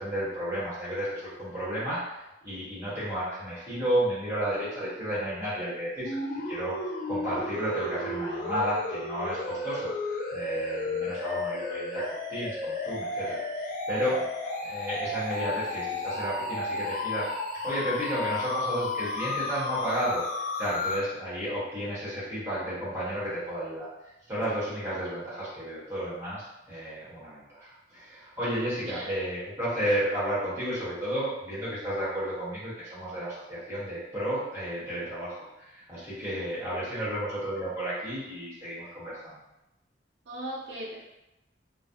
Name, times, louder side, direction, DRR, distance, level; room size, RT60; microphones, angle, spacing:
voice 1, 0.0-2.1 2.4-6.8 7.1-14.3 14.6-17.3 17.6-20.2 20.6-23.9 24.3-39.4, equal, 15° right, -11 dB, 1.0 m, -32 dB
sound 1, 6.0-21.0, left 2 dB, 50° left, 0.4 m, -33 dB
voice 2, 36.7-37.0 40.3-41.0, right 1 dB, 80° right, -5 dB, 0.6 m, -39 dB
2.3 x 2.0 x 2.6 m, 0.92 s
head